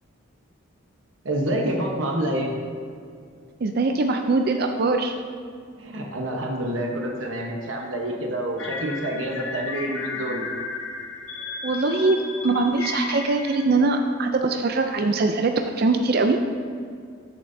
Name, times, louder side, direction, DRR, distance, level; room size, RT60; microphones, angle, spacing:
voice 1, 1.2-2.5 5.8-10.4, right 1 dB, 70° right, 0 dB, 1.0 m, -27 dB
voice 2, 3.6-5.1 11.6-16.4, right 3 dB, 50° right, 5 dB, 0.4 m, -22 dB
sound 1, 8.6-13.7, left 4 dB, 70° left, 0.8 m, -34 dB
13.5 x 7.2 x 2.7 m, 2.2 s
head